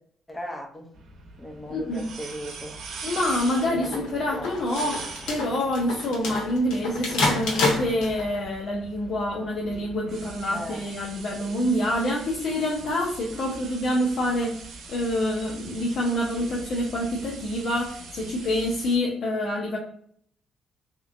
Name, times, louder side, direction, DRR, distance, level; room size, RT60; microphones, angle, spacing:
voice 1, 0.3-0.9 1.4-2.8 3.5-4.6 10.5-10.9, equal, 5° left, 0.6 m, -38 dB
sound 1, 0.9-19.0, right 3 dB, 65° right, 0.8 m, -42 dB
voice 2, 1.7-2.0 3.0-19.8, left 1 dB, 50° left, 0.7 m, -27 dB
sound 2, 3.5-8.4, left 3 dB, 85° left, 1.0 m, -28 dB
3.2 x 2.9 x 2.5 m
cardioid pair, 145°, 0 cm